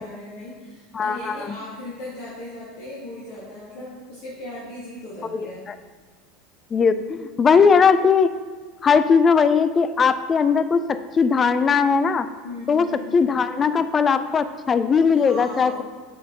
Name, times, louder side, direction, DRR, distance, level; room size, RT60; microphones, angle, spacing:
voice 1, 0.0-5.6 12.4-13.1 15.1-15.8, left 1 dB, 55° left, -7 dB, 1.3 m, -37 dB
voice 2, 0.9-1.6 5.3-5.7 6.7-8.3 8.8-12.3 12.7-15.7, left 5 dB, 25° left, 12 dB, 0.3 m, -19 dB
9.0 x 4.1 x 2.9 m, 1.5 s
figure-of-eight pair, 75°, 0 cm